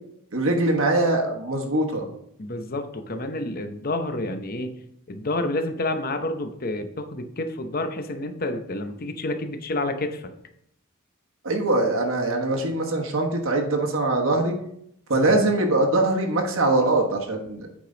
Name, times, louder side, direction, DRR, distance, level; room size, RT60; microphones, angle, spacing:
voice 1, 0.3-2.1 11.4-14.5 15.1-17.7, right 2 dB, 65° right, 1 dB, 1.3 m, -22 dB
voice 2, 2.4-4.8 5.1-10.3 15.1-15.3, left 2 dB, 40° left, 6 dB, 0.7 m, -29 dB
8.6 x 5.1 x 3.9 m, 0.74 s
head